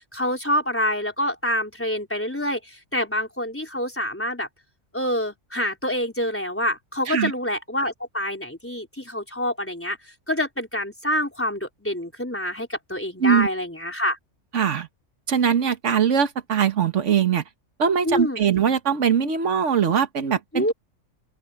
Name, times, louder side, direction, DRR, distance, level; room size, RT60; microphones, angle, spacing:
voice 1, 0.0-4.5 4.9-10.0 10.3-14.2 18.0-18.4 20.5-20.7, left 1 dB, 10° left, 4.1 m, -26 dB
voice 2, 14.5-14.9 15.3-17.4 17.8-20.7, right 7 dB, 75° right, 1.6 m, -21 dB
open air
omnidirectional pair, 1.3 m